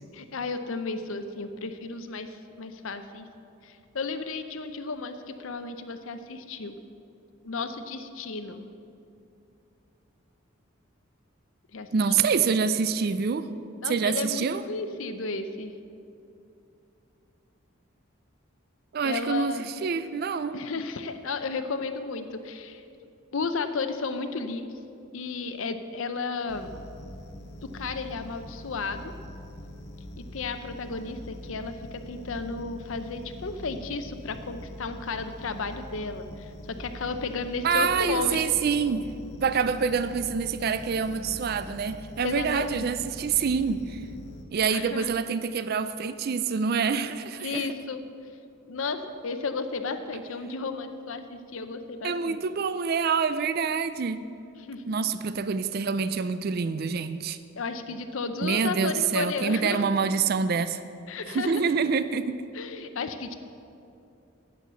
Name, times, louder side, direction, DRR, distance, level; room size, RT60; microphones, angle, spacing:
voice 1, 0.1-3.3 3.6-6.7 7.4-8.7 11.7-11.9 13.8-15.7 19.0-19.7 20.5-22.8 23.3-24.8 25.1-26.7 27.6-29.1 30.2-38.4 42.2-42.9 44.7-45.1 47.4-48.0 48.7-52.4 54.7-54.8 57.6-59.8 61.1-61.6 62.5-63.3, left 4 dB, 70° left, 8 dB, 0.6 m, -33 dB
voice 2, 11.9-13.5 13.9-14.6 18.9-20.6 37.6-39.1 39.4-44.0 44.5-47.7 52.0-54.3 54.9-57.4 58.4-60.8 61.3-62.4, right 5 dB, 45° right, 13 dB, 0.4 m, -26 dB
sound 1, 26.5-44.4, left 1 dB, 50° left, 1.1 m, -43 dB
11.0 x 8.4 x 6.8 m, 2.6 s
head